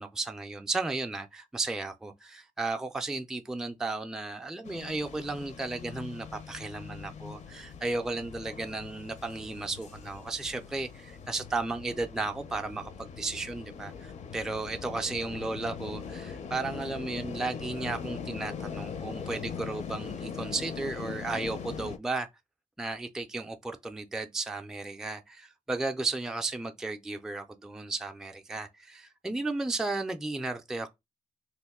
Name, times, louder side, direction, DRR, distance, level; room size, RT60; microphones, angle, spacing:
voice 1, 0.0-22.3 22.8-30.9, right 3 dB, 5° right, 0.3 m, -34 dB
sound 1, 4.7-22.0, left 6 dB, 60° left, 0.5 m, -41 dB
2.9 x 2.5 x 3.5 m
wide cardioid pair, 115°, 14 cm